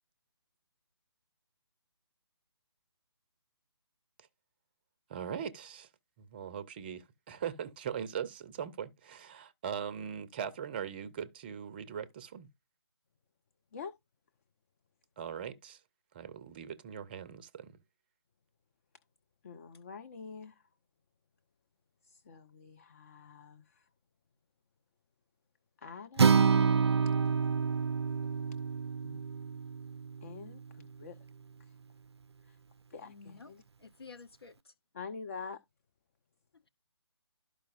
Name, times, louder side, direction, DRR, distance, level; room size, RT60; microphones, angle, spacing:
voice 1, 5.1-5.9 6.2-12.5 15.2-15.8 16.1-17.7, right 8 dB, 20° right, 0.5 m, -40 dB
voice 2, 19.4-20.5 22.0-23.8 25.8-26.6 29.0-29.2 30.2-31.2 32.9-33.6 34.9-35.6, left 5 dB, 30° left, 0.5 m, -46 dB
Acoustic guitar, 26.2-30.4, right 6 dB, 70° right, 0.4 m, -28 dB
voice 3, 33.0-33.5 33.8-34.7, left 4 dB, 65° left, 0.8 m, -51 dB
12.5 x 5.0 x 2.5 m
figure-of-eight pair, 145°, 14 cm